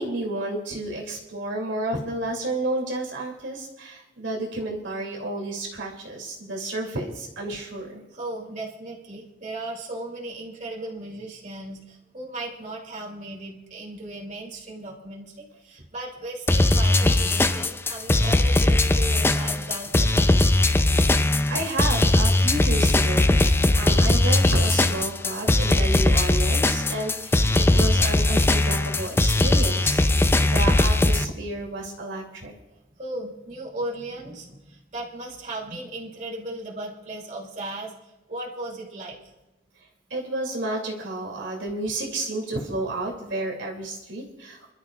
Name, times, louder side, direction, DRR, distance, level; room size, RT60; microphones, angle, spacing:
voice 1, 0.0-8.0 21.5-32.5 40.1-44.7, right 2 dB, 80° right, -2 dB, 2.8 m, -31 dB
voice 2, 8.1-20.6 32.9-39.2, right 1 dB, 40° right, -2 dB, 2.8 m, -36 dB
sound 1, 16.5-31.2, left 2 dB, 15° left, 0.4 m, -20 dB
30.0 x 12.5 x 2.4 m, 1.0 s
head